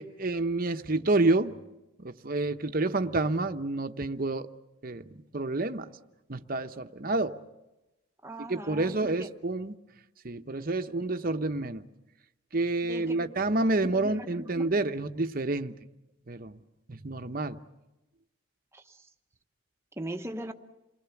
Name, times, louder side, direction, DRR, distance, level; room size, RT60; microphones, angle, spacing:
voice 1, 0.0-1.6 2.0-4.5 4.8-5.9 6.3-7.4 8.5-9.7 10.2-11.9 12.5-15.8 16.3-16.6 16.9-17.6, right 2 dB, 45° right, 0.9 m, -29 dB
voice 2, 8.2-9.3 12.8-13.4 13.8-14.7 18.7-19.1 20.0-20.5, right 1 dB, 15° right, 1.1 m, -40 dB
28.5 x 21.0 x 7.1 m
head